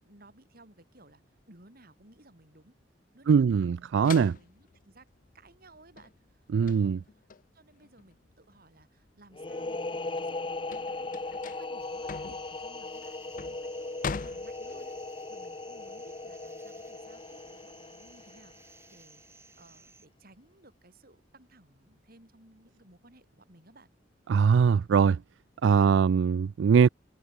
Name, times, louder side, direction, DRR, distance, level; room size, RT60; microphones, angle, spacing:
voice 1, 0.0-2.8 3.1-3.8 4.0-5.1 5.3-7.2 7.5-11.1 11.6-23.9, right 2 dB, 55° right, 6.6 m, -58 dB
voice 2, 3.3-4.3 6.5-7.0 24.3-25.2 25.6-26.9, right 6 dB, 75° right, 0.3 m, -22 dB
sound 1, 4.0-9.1 9.5-15.1, left 5 dB, 50° left, 0.6 m, -42 dB
sound 2, 9.3-18.9, left 2 dB, 30° left, 1.2 m, -38 dB
sound 3, 11.8-20.1, right 3 dB, 15° right, 4.6 m, -57 dB
head